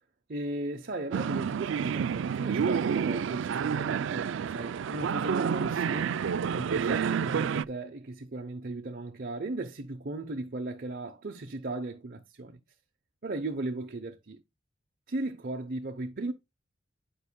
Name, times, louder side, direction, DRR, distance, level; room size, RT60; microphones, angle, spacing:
voice 1, 0.3-6.2 6.5-12.6 13.2-14.4 15.1-16.3, right 2 dB, 50° right, 0.8 m, -36 dB
sound 1, 1.1-7.6, right 7 dB, 70° right, 0.4 m, -29 dB
10.0 x 5.5 x 2.2 m
head